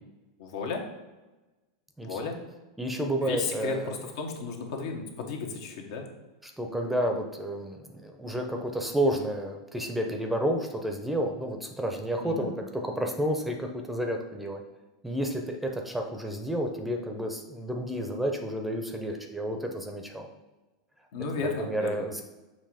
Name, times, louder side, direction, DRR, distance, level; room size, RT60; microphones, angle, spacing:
voice 1, 0.4-0.8 2.0-2.4 3.2-6.0 12.2-12.5 21.1-22.2, left 4 dB, 65° left, 2 dB, 1.2 m, -34 dB
voice 2, 2.8-4.0 6.4-14.6 15.0-20.3 21.3-22.2, right 1 dB, 5° right, 3 dB, 0.8 m, -31 dB
6.8 x 2.9 x 5.0 m, 1.1 s
hypercardioid pair, 100°, 2 cm